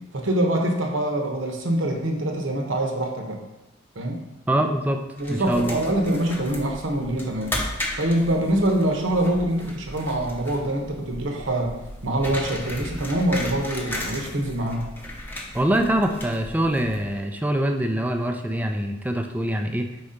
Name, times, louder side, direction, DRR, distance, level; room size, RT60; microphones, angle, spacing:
voice 1, 0.1-3.4 3.9-4.2 5.2-7.6 8.0-14.9, right 1 dB, 70° right, 2 dB, 1.0 m, -24 dB
voice 2, 4.5-5.0 5.3-5.8 15.5-19.9, right 1 dB, 10° right, 5 dB, 0.4 m, -24 dB
sound 1, 5.2-17.2, left 1 dB, 10° left, 0.8 m, -35 dB
4.7 x 4.1 x 5.0 m, 0.99 s
head